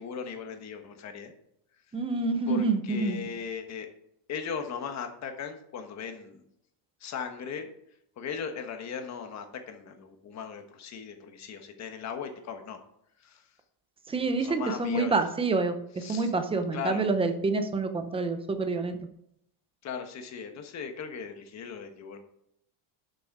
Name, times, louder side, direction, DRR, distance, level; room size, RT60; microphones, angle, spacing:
voice 1, 0.0-1.3 2.5-3.9 4.3-6.4 7.0-7.7 8.2-12.8 13.2-13.4 14.4-15.2 16.0-16.3 16.7-17.1 19.8-22.2, left 6 dB, 35° left, 6 dB, 1.3 m, -38 dB
voice 2, 1.9-3.2 14.1-15.7 16.1-19.0, right 3 dB, 10° right, 7 dB, 0.7 m, -27 dB
12.0 x 6.8 x 4.8 m, 0.74 s
cardioid pair, 175°, 49 cm